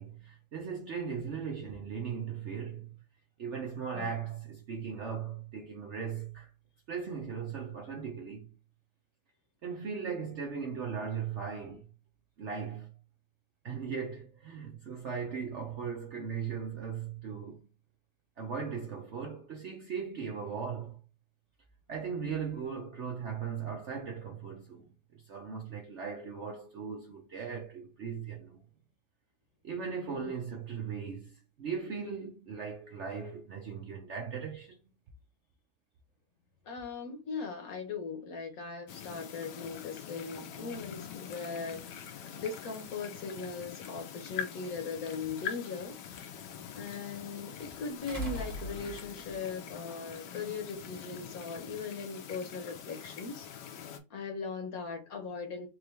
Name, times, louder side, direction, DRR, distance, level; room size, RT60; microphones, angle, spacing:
voice 1, 0.0-2.9 3.4-6.5 6.9-8.5 9.6-11.8 12.4-12.9 13.6-17.7 18.4-21.0 21.9-28.6 29.6-34.8, right 6 dB, 60° right, 0.8 m, -38 dB
voice 2, 30.1-30.4 36.6-46.4 46.7-53.5 54.1-55.7, left 4 dB, 60° left, 1.2 m, -39 dB
sound 1, 38.9-54.0, left 8 dB, 80° left, 1.3 m, -44 dB
sound 2, 44.8-44.9 48.1-49.4 50.7-50.8, equal, 20° right, 1.4 m, -39 dB
3.8 x 3.1 x 3.1 m
omnidirectional pair, 1.9 m